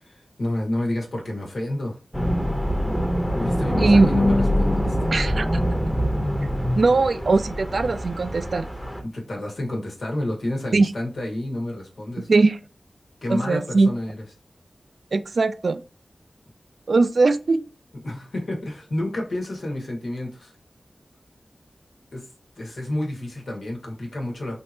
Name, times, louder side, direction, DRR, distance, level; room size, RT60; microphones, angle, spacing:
voice 1, 0.0-2.0 3.3-5.1 9.1-12.3 13.2-14.1 18.0-20.5 22.1-22.2 22.6-24.6, left 1 dB, 85° left, 1.4 m, -29 dB
sound 1, 2.1-9.0, equal, 5° left, 0.8 m, -24 dB
voice 2, 3.8-4.1 5.1-5.5 6.8-8.7 10.7-10.9 12.3-12.6 13.3-13.9 15.1-15.8 16.9-17.6, right 3 dB, 80° right, 0.4 m, -20 dB
3.6 x 2.8 x 2.7 m
wide cardioid pair, 60°, 0 cm